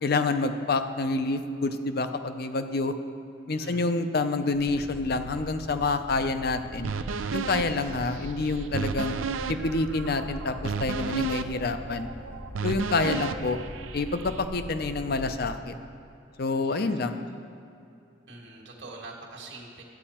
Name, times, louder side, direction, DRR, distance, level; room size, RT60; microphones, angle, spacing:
voice 1, 0.0-2.9 3.5-6.9 7.3-9.1 9.5-12.1 12.6-13.6 13.9-15.8 16.4-17.2, left 3 dB, 50° left, 9 dB, 0.5 m, -27 dB
voice 2, 3.6-4.0 16.6-17.0 18.3-19.8, right 2 dB, 60° right, -2 dB, 1.5 m, -44 dB
Boat Water vehicle, 4.5-15.6, equal, 10° left, 0.7 m, -42 dB
sound 1, 6.8-14.5, right 5 dB, 85° right, 0.5 m, -33 dB
12.0 x 8.8 x 4.3 m, 2.6 s
head